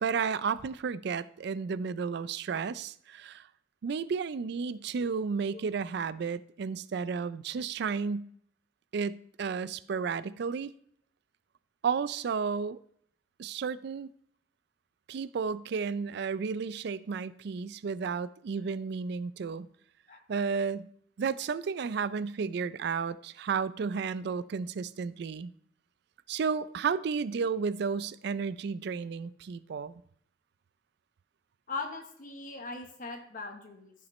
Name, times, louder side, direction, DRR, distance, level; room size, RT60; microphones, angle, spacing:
voice 1, 0.0-3.5 3.8-8.3 8.9-10.7 11.8-12.8 13.4-14.1 15.1-19.7 20.3-20.9 21.2-25.5 26.3-30.0, right 5 dB, 60° right, 0.4 m, -32 dB
voice 2, 31.7-33.9, left 3 dB, 45° left, 1.0 m, -40 dB
14.5 x 5.9 x 3.1 m
head